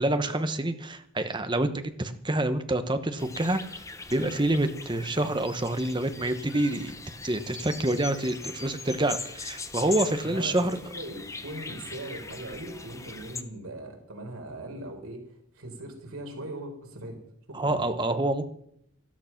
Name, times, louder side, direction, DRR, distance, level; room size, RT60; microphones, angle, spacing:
voice 1, 0.0-1.7 2.0-3.6 4.1-6.9 7.2-10.7 17.5-18.5, right 1 dB, 20° right, 9 dB, 1.0 m, -27 dB
sound 1, 3.2-13.4, left 4 dB, 15° left, 0.8 m, -41 dB
voice 2, 10.2-17.2 17.5-17.8, right 1 dB, 80° right, 2 dB, 4.2 m, -40 dB
13.5 x 13.0 x 5.9 m, 0.68 s
head